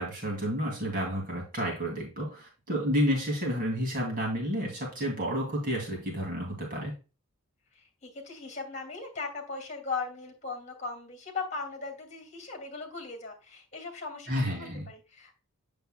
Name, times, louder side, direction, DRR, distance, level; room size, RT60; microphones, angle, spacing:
voice 1, 0.0-6.9 14.3-14.9, equal, 40° right, -2 dB, 2.7 m, -30 dB
voice 2, 7.7-15.4, left 4 dB, 35° left, 3 dB, 2.5 m, -38 dB
8.3 x 6.8 x 2.3 m, 0.31 s
head